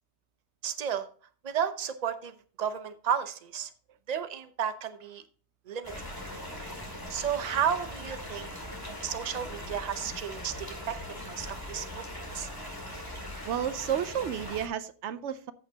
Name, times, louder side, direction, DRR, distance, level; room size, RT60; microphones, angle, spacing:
voice 1, 0.6-1.1 1.4-3.7 4.1-5.2 5.7-5.9 7.1-8.5 9.0-12.5, right 8 dB, 40° right, 10 dB, 0.8 m, -33 dB
sound 1, 5.8-14.7, left 1 dB, 20° left, 2.3 m, -40 dB
voice 2, 13.4-15.5, right 9 dB, 80° right, 14 dB, 0.9 m, -31 dB
14.5 x 5.9 x 2.8 m, 0.42 s
omnidirectional pair, 1.2 m